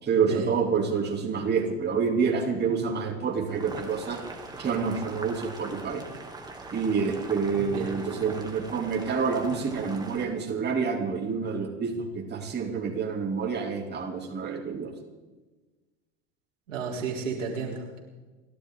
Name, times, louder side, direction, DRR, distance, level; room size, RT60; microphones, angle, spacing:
voice 1, 0.0-4.2 4.6-6.0 6.7-14.9, right 5 dB, 25° right, 0 dB, 3.0 m, -28 dB
Boiling, 3.5-10.3, right 3 dB, 10° right, 2.7 m, -42 dB
voice 2, 7.5-7.9 16.7-18.0, right 5 dB, 80° right, -2 dB, 3.8 m, -33 dB
30.0 x 11.5 x 3.9 m, 1.2 s
hypercardioid pair, 85°, 38 cm